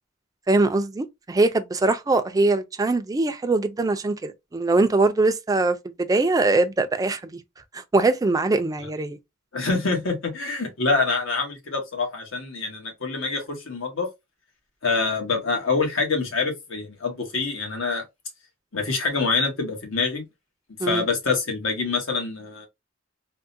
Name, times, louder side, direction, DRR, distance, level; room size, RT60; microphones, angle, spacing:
voice 1, 0.5-7.4 7.7-9.2 20.8-21.0, right 2 dB, 20° right, 0.3 m, -22 dB
voice 2, 9.5-14.1 14.8-18.0 18.7-20.2 20.8-22.7, left 4 dB, 80° left, 1.2 m, -25 dB
3.6 x 2.1 x 2.6 m
head